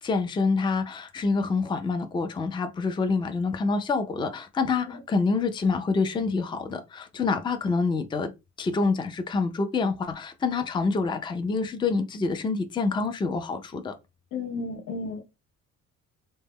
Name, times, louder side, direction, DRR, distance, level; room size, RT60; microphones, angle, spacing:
voice 1, 0.0-8.3 8.6-13.9, left 4 dB, 15° left, 0.3 m, -27 dB
voice 2, 14.3-15.2, left 3 dB, 85° left, 0.8 m, -33 dB
2.1 x 2.0 x 3.4 m
cardioid pair, 90°, 30 cm